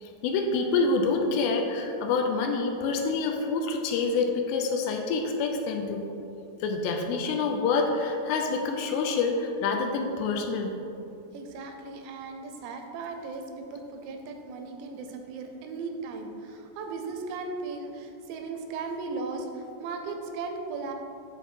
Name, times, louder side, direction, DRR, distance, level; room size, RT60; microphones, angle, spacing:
voice 1, 0.0-6.1 6.6-10.8, left 4 dB, 80° left, 3 dB, 2.6 m, -27 dB
voice 2, 11.3-20.9, right 4 dB, 80° right, 4 dB, 2.7 m, -37 dB
9.9 x 4.2 x 4.4 m, 2.8 s
omnidirectional pair, 5.1 m